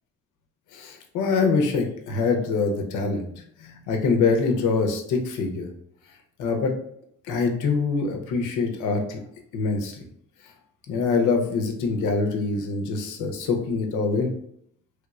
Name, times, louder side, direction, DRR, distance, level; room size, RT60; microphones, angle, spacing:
voice 1, 0.7-5.7 6.4-6.7 7.3-9.2 9.5-10.0 10.9-14.3, left 4 dB, 85° left, 4 dB, 0.6 m, -24 dB
3.1 x 3.0 x 2.3 m, 0.70 s
cardioid pair, 90°, 30 cm